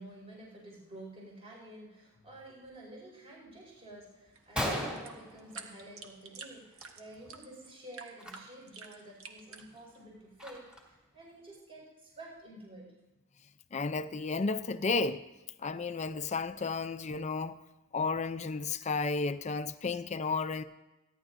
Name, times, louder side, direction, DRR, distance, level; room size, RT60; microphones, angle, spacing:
voice 1, 0.0-12.9, right 1 dB, 30° right, 5.0 m, -50 dB
Gunshot gunfire, 3.9-4.0 4.3-4.4 4.6-6.2 6.5-6.8 7.1-7.3 8.1-8.3 8.8-8.9 9.4-11.0, equal, 5° right, 2.6 m, -38 dB
sound 1, 4.3-10.0, right 5 dB, 75° right, 1.4 m, -49 dB
voice 2, 13.7-15.2 15.6-17.6 17.9-20.6, left 4 dB, 35° left, 0.5 m, -32 dB
28.5 x 11.0 x 2.6 m
head